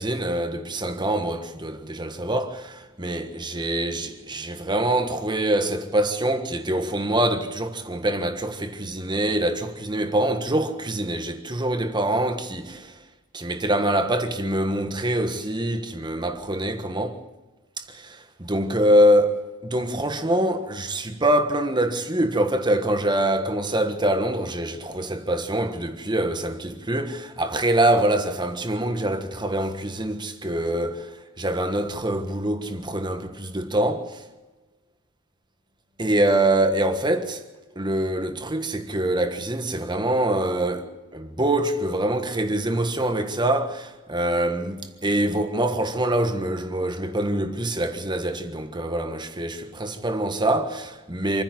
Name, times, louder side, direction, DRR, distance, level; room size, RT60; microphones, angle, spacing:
voice 1, 0.0-12.9 13.3-17.2 17.8-31.1 31.4-34.2 36.0-37.4 37.7-51.4, right 1 dB, 20° right, 1.4 m, -24 dB
26.5 x 10.5 x 9.3 m
head